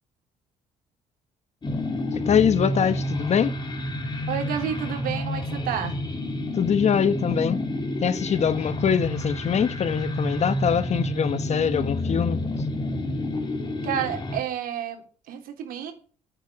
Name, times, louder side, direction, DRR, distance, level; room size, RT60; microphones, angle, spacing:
sound 1, 1.6-14.4, left 1 dB, 30° left, 3.5 m, -29 dB
voice 1, 2.1-3.5 6.5-7.6 8.0-12.4, left 7 dB, 50° left, 1.1 m, -23 dB
voice 2, 4.3-6.0 13.8-15.9, right 9 dB, 80° right, 3.4 m, -30 dB
10.5 x 8.9 x 9.6 m
supercardioid pair, 80°, 15 cm